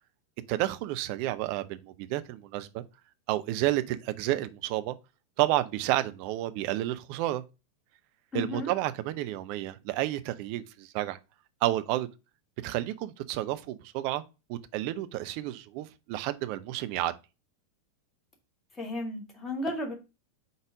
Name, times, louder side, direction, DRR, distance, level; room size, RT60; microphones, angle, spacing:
voice 1, 0.5-2.8 3.3-5.0 5.4-7.4 8.3-11.2 11.6-12.1 12.6-14.2 14.5-17.1, right 15 dB, 45° right, 0.6 m, -30 dB
voice 2, 8.3-8.7 18.7-19.9, left 1 dB, 15° left, 2.0 m, -34 dB
5.5 x 4.0 x 4.7 m
figure-of-eight pair, 90°, 0 cm